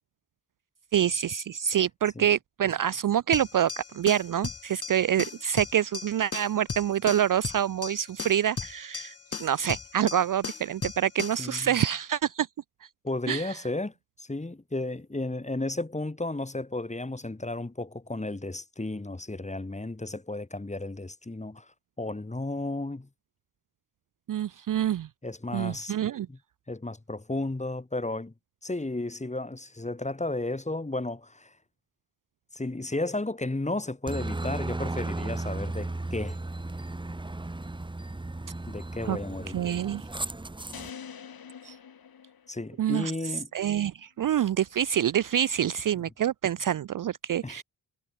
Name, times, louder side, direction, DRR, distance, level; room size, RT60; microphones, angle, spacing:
voice 1, 0.9-12.5 13.3-13.6 24.3-25.1 25.5-26.3 39.1-39.2 39.5-40.0 41.6-41.8 42.8-43.1 43.5-47.6, right 10 dB, 45° right, 0.5 m, -26 dB
sound 1, 3.3-11.5, left 4 dB, 30° left, 1.7 m, -37 dB
voice 2, 11.4-11.8 13.0-23.1 25.2-25.9 26.3-26.4 26.7-28.3 28.6-31.5 32.5-36.4 38.7-39.6 42.5-43.5 47.4-47.6, left 2 dB, 15° left, 1.8 m, -33 dB
Aircraft, 34.1-40.9, right 2 dB, 10° right, 1.0 m, -35 dB
sound 2, 40.7-43.0, left 7 dB, 50° left, 1.6 m, -45 dB
supercardioid pair, 40°, 46 cm